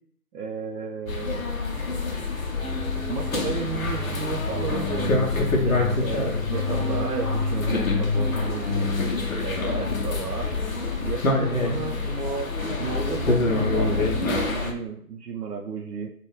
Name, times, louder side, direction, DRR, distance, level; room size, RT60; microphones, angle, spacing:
voice 1, 0.3-1.5 3.1-5.1 5.6-10.5 11.0-12.5 12.8-16.1, right 5 dB, 90° right, 2 dB, 0.6 m, -33 dB
sound 1, 1.1-14.7, left 3 dB, 60° left, 0.7 m, -26 dB
sound 2, 1.6-5.5 5.8-9.6, left 1 dB, 15° right, 0.8 m, -37 dB
sound 3, 3.9-10.7, right 2 dB, 45° right, 0.9 m, -40 dB
2.9 x 2.2 x 3.5 m, 0.62 s
figure-of-eight pair, 155°, 46 cm